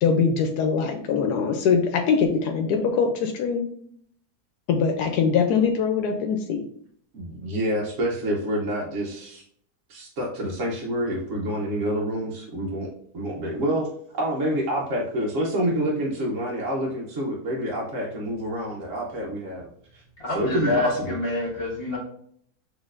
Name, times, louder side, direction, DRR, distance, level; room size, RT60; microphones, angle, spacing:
voice 1, 0.0-3.7 4.7-6.6, left 6 dB, 85° left, 4 dB, 1.2 m, -22 dB
voice 2, 7.1-9.4 9.9-12.9 13.1-13.9 14.2-19.7 19.9-20.0 20.3-21.1, right 1 dB, 60° right, -4 dB, 1.2 m, -27 dB
voice 3, 20.2-22.0, left 2 dB, 40° left, -4 dB, 1.5 m, -27 dB
6.3 x 3.2 x 2.5 m, 0.65 s
omnidirectional pair, 1.7 m